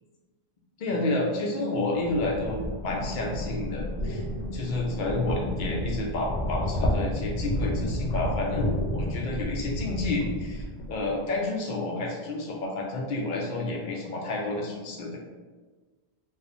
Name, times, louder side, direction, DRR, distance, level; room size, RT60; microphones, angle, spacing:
voice 1, 0.8-4.2 4.5-15.2, left 2 dB, 55° left, -1 dB, 0.6 m, -30 dB
sound 1, 1.9-11.2, left 1 dB, 85° left, 0.9 m, -31 dB
3.2 x 2.1 x 2.5 m, 1.4 s
omnidirectional pair, 1.1 m